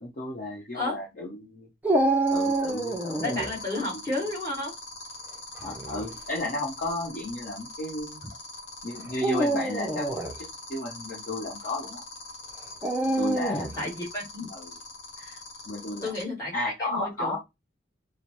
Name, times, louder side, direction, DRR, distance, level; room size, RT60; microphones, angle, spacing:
voice 1, 0.0-1.7 2.3-3.3 3.7-3.9 5.6-8.3 8.8-12.0 13.0-13.8 14.5-14.7 15.7-16.1 16.5-17.4, left 2 dB, 45° left, -1 dB, 0.9 m, -33 dB
Dog, 1.8-3.5 5.6-6.1 6.9-7.0 9.1-10.3 12.8-13.8, right 2 dB, 10° right, 0.5 m, -26 dB
sound 1, 2.3-16.2, left 4 dB, 70° left, 1.1 m, -42 dB
voice 2, 3.2-4.7 13.8-14.5 15.2-15.4 16.0-17.4, left 2 dB, 15° left, -5 dB, 1.8 m, -32 dB
4.9 x 2.1 x 3.0 m, 0.21 s
head